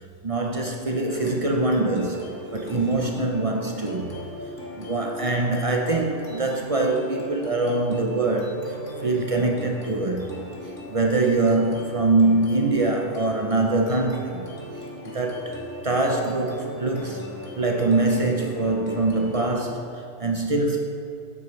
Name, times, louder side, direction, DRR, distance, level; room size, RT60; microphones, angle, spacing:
voice 1, 0.2-4.1 4.4-14.5 14.7-17.2 17.6-20.9, right 2 dB, 45° right, 1 dB, 0.4 m, -24 dB
sound 1, 1.1-19.7, equal, 75° left, 1.8 m, -38 dB
9.2 x 7.9 x 3.1 m, 2.7 s
omnidirectional pair, 1.3 m